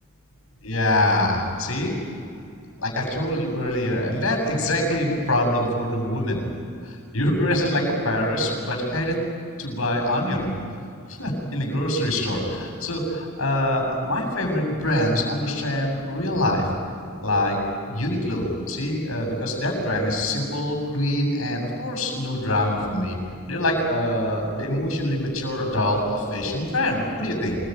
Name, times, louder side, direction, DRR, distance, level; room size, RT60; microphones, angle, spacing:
voice 1, 0.6-1.9 2.8-6.4 6.8-9.2 9.6-10.5 11.1-16.7 17.2-17.6 17.9-23.2 23.5-27.6, left 1 dB, 80° left, 2 dB, 7.5 m, -24 dB
27.0 x 22.0 x 9.3 m, 2.5 s
head